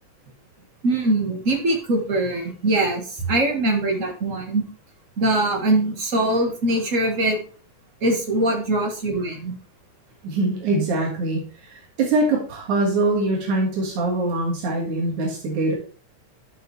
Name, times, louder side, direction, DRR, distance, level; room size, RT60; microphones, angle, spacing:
voice 1, 0.8-4.6 5.2-7.4 8.0-9.5, right 2 dB, 35° right, 2 dB, 1.4 m, -22 dB
voice 2, 10.2-15.7, right 2 dB, 80° right, -2 dB, 3.3 m, -23 dB
12.5 x 5.4 x 3.3 m, 0.41 s
omnidirectional pair, 3.3 m